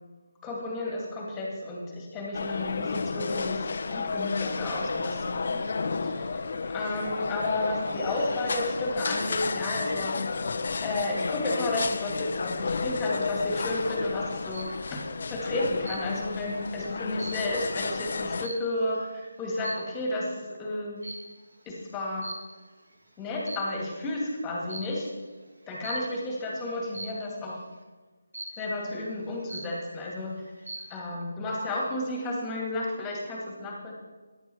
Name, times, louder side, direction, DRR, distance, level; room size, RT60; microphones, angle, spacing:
voice 1, 0.4-5.6 6.0-6.4 6.7-10.2 10.8-19.1 19.4-21.0 21.7-22.3 23.2-25.1 25.7-27.6 28.6-30.3 30.9-33.9, left 2 dB, 10° left, -1 dB, 2.4 m, -32 dB
sound 1, 2.3-18.5, left 4 dB, 50° left, 0.8 m, -32 dB
sound 2, 14.2-14.8 15.8-16.4 16.8-19.0 19.6-20.0 21.0-21.4 22.2-22.8 23.3-24.0 24.7-25.1 25.8-26.2 26.9-27.4 28.3-28.8 29.2-29.3 29.5-30.1 30.5-31.0, right 1 dB, 80° right, 2.8 m, -42 dB
15.0 x 11.0 x 4.6 m, 1.3 s
figure-of-eight pair, 170°, 0 cm